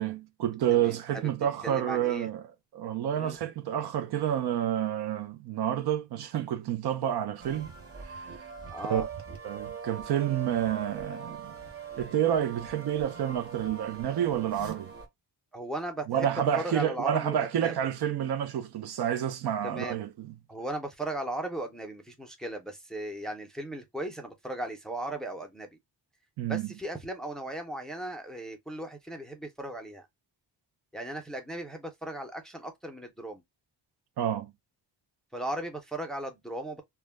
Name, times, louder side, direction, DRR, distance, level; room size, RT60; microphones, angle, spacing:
voice 1, 0.0-2.4 2.7-7.7 8.0-8.5 8.9-9.1 9.4-11.5 12.0-14.9 16.1-20.3 26.4-26.7 34.2-34.5, right 10 dB, 65° right, 0.5 m, -29 dB
voice 2, 0.8-1.3 1.6-2.3 3.1-3.4 8.7-9.1 15.5-16.3 16.6-17.7 19.6-20.0 20.5-25.7 26.5-30.1 30.9-33.4 35.3-36.8, right 1 dB, ahead, 0.4 m, -37 dB
sound 1, 7.4-15.1, right 6 dB, 35° right, 0.8 m, -42 dB
2.2 x 2.1 x 3.2 m
wide cardioid pair, 145°, 41 cm